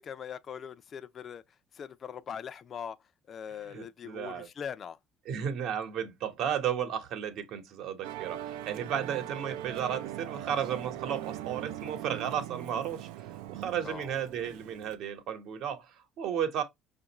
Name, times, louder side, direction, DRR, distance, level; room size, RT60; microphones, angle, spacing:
voice 1, 0.0-1.4 1.7-3.0 3.3-5.0 13.8-14.1, left 8 dB, 45° left, 0.4 m, -41 dB
voice 2, 3.7-4.5 5.2-16.6, right 9 dB, 65° right, 0.9 m, -34 dB
Musical instrument, 8.0-15.0, right 12 dB, 85° right, 0.3 m, -41 dB
5.1 x 2.5 x 2.9 m
supercardioid pair, 90°, 0 cm